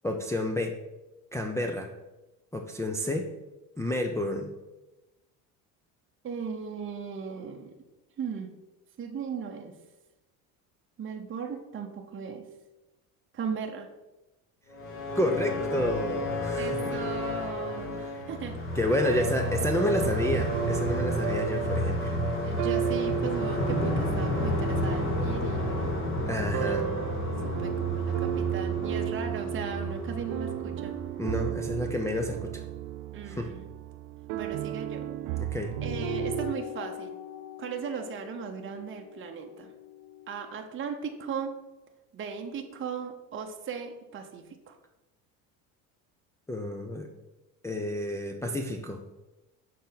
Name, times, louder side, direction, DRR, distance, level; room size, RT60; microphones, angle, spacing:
voice 1, 0.0-0.8 1.3-1.9 2.5-3.3 3.8-4.5 15.1-16.8 18.8-22.1 26.3-26.9 31.2-32.6 33.2-33.5 35.4-35.8 46.5-47.1 47.6-49.0, left 1 dB, 5° left, 1 dB, 0.5 m, -30 dB
voice 2, 6.2-7.8 8.2-8.5 9.0-9.7 11.0-12.5 13.3-13.9 16.5-18.6 19.0-19.2 22.4-25.9 26.3-27.0 27.4-31.0 33.1-33.7 34.3-35.1 35.8-37.2 37.6-39.7 40.3-41.5 42.1-44.8, right 6 dB, 30° right, 4 dB, 0.8 m, -37 dB
sound 1, 14.7-31.6, left 1 dB, 30° left, 1.4 m, -31 dB
sound 2, 20.0-36.5, right 12 dB, 65° right, 0.6 m, -34 dB
sound 3, 35.7-40.5, left 12 dB, 55° left, 0.7 m, -42 dB
6.3 x 4.2 x 3.9 m, 1.0 s
supercardioid pair, 80°, 43 cm